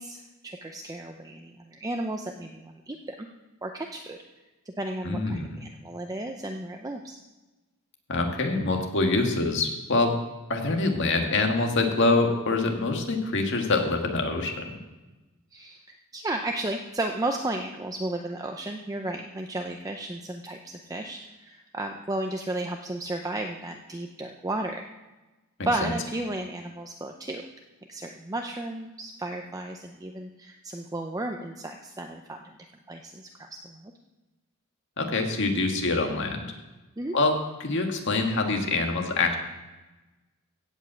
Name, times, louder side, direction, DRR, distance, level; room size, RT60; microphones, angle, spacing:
voice 1, 0.0-3.3 3.6-4.2 4.8-7.2 15.5-24.9 25.7-27.4 27.9-32.6 32.9-33.9 37.0-37.2, right 1 dB, 15° right, 3 dB, 0.6 m, -34 dB
voice 2, 5.0-5.6 8.1-10.1 10.5-14.6 25.8-25.9 35.0-36.5 37.1-37.4 37.6-39.3, left 3 dB, 60° left, 3 dB, 1.8 m, -25 dB
16.0 x 5.4 x 7.5 m, 1.1 s
head